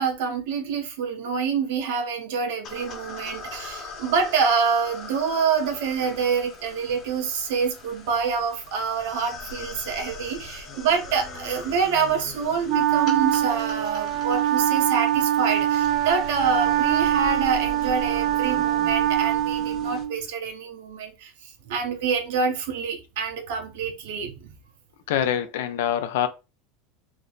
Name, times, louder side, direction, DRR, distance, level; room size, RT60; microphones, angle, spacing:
voice 1, 0.0-24.5, right 5 dB, 70° right, 0.8 m, -26 dB
sound 1, 2.6-20.0, left 3 dB, 30° left, 1.0 m, -41 dB
Wind instrument woodwind instrument, 12.7-20.2, right 12 dB, 45° right, 0.4 m, -23 dB
voice 2, 25.1-26.3, left 10 dB, 75° left, 0.5 m, -24 dB
3.1 x 2.2 x 3.8 m
supercardioid pair, 165°, 0 cm